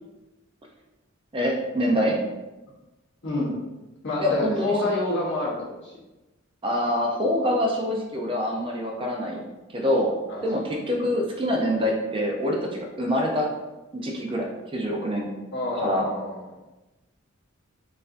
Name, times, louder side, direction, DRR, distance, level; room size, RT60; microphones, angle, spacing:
voice 1, 1.3-2.2 4.2-4.8 6.6-9.4 9.7-10.1 10.4-13.5 13.9-14.5 14.7-15.3 15.7-16.1, equal, 25° right, 0 dB, 0.4 m, -25 dB
voice 2, 3.2-3.5 4.0-5.6 5.8-5.9 10.3-10.4 15.5-16.4, left 2 dB, 60° left, -5 dB, 0.9 m, -27 dB
4.2 x 2.5 x 2.5 m, 1.1 s
head